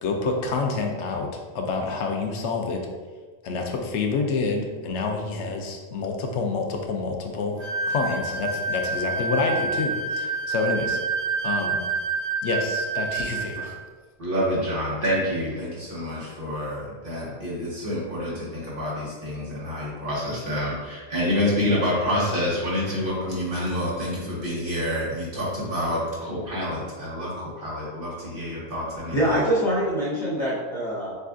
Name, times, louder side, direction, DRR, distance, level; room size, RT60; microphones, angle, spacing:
voice 1, 0.0-1.3 1.5-2.9 3.4-11.0 11.4-11.8 12.4-13.8, left 3 dB, 85° left, 2 dB, 0.9 m, -27 dB
sound 1, 7.6-13.7, right 4 dB, 70° right, 1.4 m, -28 dB
voice 2, 14.2-29.4, left 1 dB, 50° right, -6 dB, 1.3 m, -28 dB
voice 3, 29.1-31.2, right 1 dB, 35° left, -6 dB, 1.0 m, -24 dB
6.6 x 2.4 x 2.5 m, 1.4 s
omnidirectional pair, 1.2 m